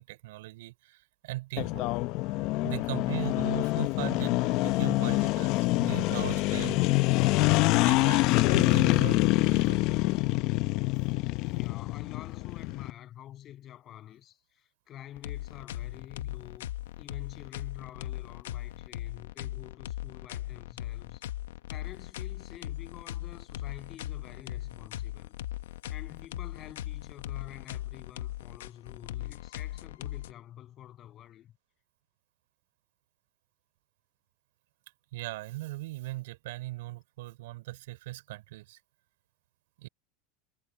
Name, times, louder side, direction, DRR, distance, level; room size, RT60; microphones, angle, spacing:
voice 1, 0.0-1.9 2.6-6.8 7.7-9.8 35.1-38.8 39.8-39.9, right 18 dB, 80° right, 3.9 m, -39 dB
sound 1, 1.6-12.9, left 20 dB, 60° left, 0.7 m, -26 dB
voice 2, 11.5-21.2 21.7-25.4 25.9-31.5, left 12 dB, 40° left, 7.5 m, -48 dB
sound 2, 15.2-30.3, left 14 dB, 85° left, 1.0 m, -39 dB
supercardioid pair, 115°, 0 cm